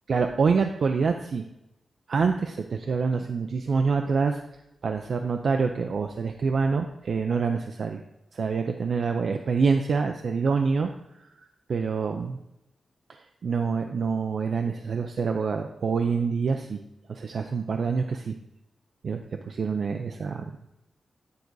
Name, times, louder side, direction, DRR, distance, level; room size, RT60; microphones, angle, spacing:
voice 1, 0.1-1.4 2.1-4.4 4.8-8.0 8.3-10.9 11.4-12.4 13.1-16.8 17.1-18.3 19.0-20.4, right 5 dB, 65° right, 5 dB, 0.5 m, -26 dB
9.5 x 3.9 x 4.7 m, 0.90 s
wide cardioid pair, 110°, 0 cm